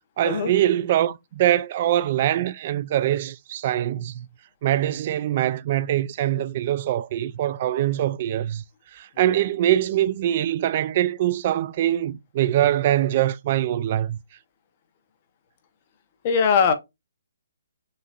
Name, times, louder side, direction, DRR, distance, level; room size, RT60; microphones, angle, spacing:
voice 1, 0.2-4.3 4.6-8.6 8.9-14.2, right 12 dB, 30° right, 0.3 m, -23 dB
voice 2, 16.2-16.7, left 6 dB, 25° left, 0.9 m, -20 dB
6.5 x 2.9 x 2.4 m
hypercardioid pair, 170°, 0 cm